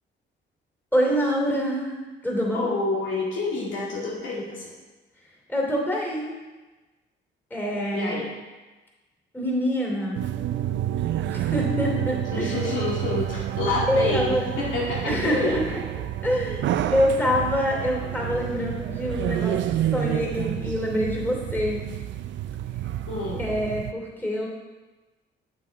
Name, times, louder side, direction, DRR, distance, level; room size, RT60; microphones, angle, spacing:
voice 1, 0.9-2.7 5.5-6.4 7.5-8.2 9.3-10.2 11.3-12.6 13.9-14.5 15.1-15.8 16.2-21.9 22.9-23.0 23.4-24.5, equal, 10° left, -1 dB, 2.8 m, -26 dB
voice 2, 2.5-4.8 7.9-8.3 12.3-15.6 23.1-23.4, left 3 dB, 75° left, -5 dB, 2.3 m, -28 dB
sound 1, 10.1-23.9, right 11 dB, 70° right, 0.4 m, -29 dB
8.5 x 7.3 x 3.5 m, 1.2 s
cardioid pair, 90°, 20 cm